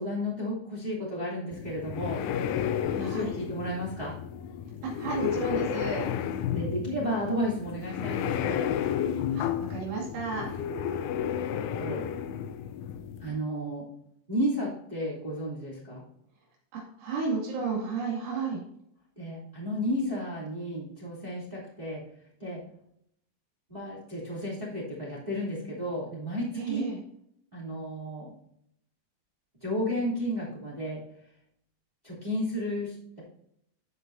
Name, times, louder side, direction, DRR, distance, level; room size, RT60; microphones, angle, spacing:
voice 1, 0.0-2.2 2.9-4.1 6.5-8.5 11.5-12.0 13.2-13.8 14.3-16.0 19.1-22.0 22.4-22.6 23.7-26.8 27.5-28.3 29.6-31.0 32.0-33.2, equal, 15° right, -7 dB, 1.4 m, -32 dB
sound 1, 1.5-13.3, left 9 dB, 80° left, 2.9 m, -32 dB
voice 2, 3.0-3.3 4.8-6.0 9.3-9.4 9.7-10.5 16.7-18.6 26.5-27.0, right 4 dB, 75° right, -4 dB, 4.8 m, -32 dB
14.0 x 5.5 x 2.7 m, 0.74 s
omnidirectional pair, 5.8 m